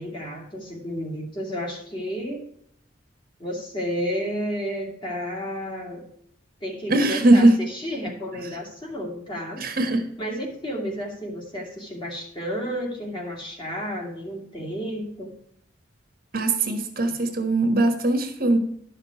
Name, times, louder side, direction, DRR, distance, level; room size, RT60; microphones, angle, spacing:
voice 1, 0.0-2.5 3.4-6.1 6.6-9.6 10.2-15.4, equal, 25° left, 0 dB, 2.3 m, -32 dB
voice 2, 6.9-7.5 9.6-10.0 16.3-18.6, right 2 dB, 45° right, 6 dB, 1.3 m, -20 dB
12.0 x 5.7 x 4.6 m, 0.69 s
head